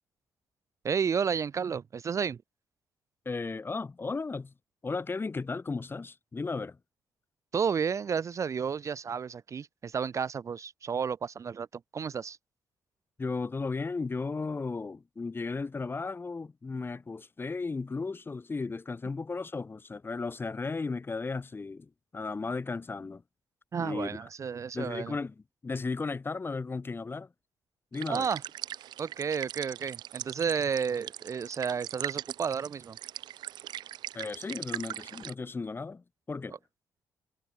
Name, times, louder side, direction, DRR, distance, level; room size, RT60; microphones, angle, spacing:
voice 1, 0.8-2.4 7.5-12.4 23.7-25.2 28.1-28.4 29.0-33.0, right 6 dB, 40° right, 0.4 m, -31 dB
voice 2, 3.2-4.5 4.8-6.8 13.2-23.2 23.8-24.2 24.7-25.3 25.6-27.3 27.9-28.3 34.1-36.6, left 4 dB, 30° left, 0.9 m, -35 dB
sound 1, 27.9-35.3, right 12 dB, 70° right, 1.0 m, -41 dB
supercardioid pair, 55°, 8 cm